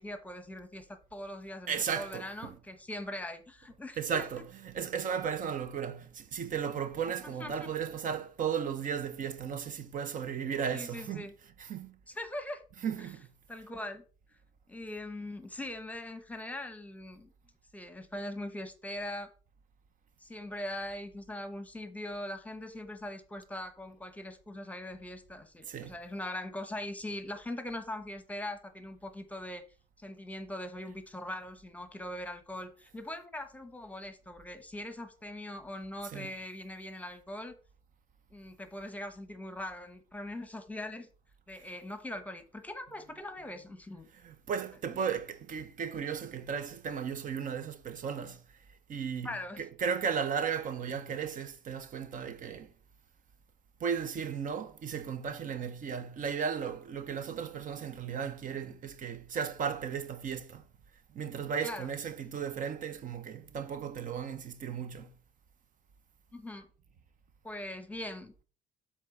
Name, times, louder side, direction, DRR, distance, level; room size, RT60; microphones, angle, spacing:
voice 1, 0.0-4.3 7.2-7.7 10.7-11.3 12.1-12.6 13.0-13.1 13.5-14.0 14.7-17.3 17.7-19.3 20.2-29.6 30.0-37.5 38.3-41.1 41.5-44.1 44.9-45.0 49.2-49.6 61.6-61.9 66.3-66.7 67.4-68.4, left 1 dB, 10° left, 1.0 m, -41 dB
voice 2, 1.7-2.6 4.0-11.3 11.6-12.0 12.8-13.3 25.7-25.9 36.1-36.3 44.2-48.4 48.9-52.7 53.8-60.6 61.1-65.1, right 7 dB, 50° right, 0.8 m, -35 dB
7.4 x 3.6 x 6.4 m
cardioid pair, 110°, 17 cm